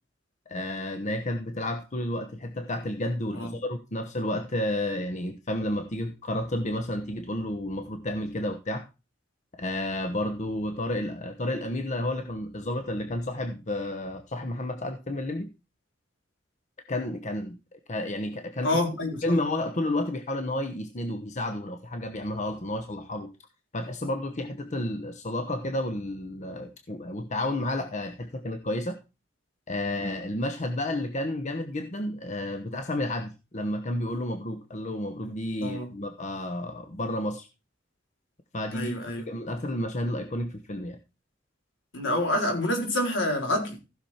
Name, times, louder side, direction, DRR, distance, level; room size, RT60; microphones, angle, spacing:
voice 1, 0.5-8.8 9.6-15.5 16.9-18.8 19.2-23.3 23.7-29.0 29.7-37.5 38.5-39.0 39.3-41.0, left 1 dB, 40° left, 1.0 m, -31 dB
voice 2, 18.6-19.2 35.6-35.9 38.7-39.2 41.9-43.8, left 1 dB, 80° left, 3.9 m, -27 dB
15.0 x 6.2 x 4.3 m
head